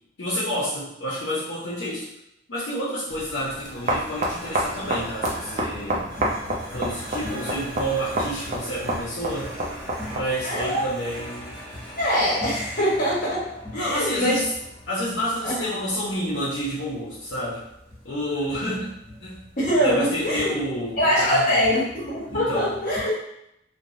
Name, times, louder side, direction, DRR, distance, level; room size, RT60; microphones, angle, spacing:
voice 1, 0.2-2.1 2.5-6.1 6.7-9.6 10.1-11.6 13.7-14.5 14.9-17.6 18.0-19.4 19.8-21.7 22.3-22.8, equal, 65° left, -8 dB, 0.8 m, -29 dB
sound 1, 3.1-23.0, equal, 5° right, 1.2 m, -40 dB
sound 2, 3.1-10.4, right 1 dB, 40° right, 0.5 m, -29 dB
voice 2, 10.4-10.8 12.0-14.4 15.4-15.7 19.6-20.5 20.9-23.2, equal, 45° left, -6 dB, 1.2 m, -23 dB
3.2 x 2.2 x 2.6 m, 0.79 s
head